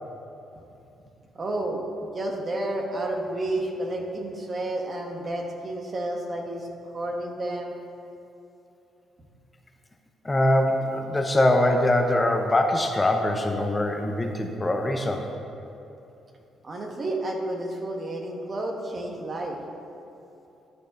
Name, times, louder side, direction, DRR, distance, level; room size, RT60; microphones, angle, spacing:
voice 1, 1.3-7.7 16.6-19.6, right 1 dB, 35° right, 1 dB, 1.4 m, -31 dB
voice 2, 10.2-15.3, left 1 dB, 20° left, 3 dB, 0.8 m, -23 dB
12.0 x 6.5 x 5.2 m, 2.9 s
cardioid pair, 90°, 0 cm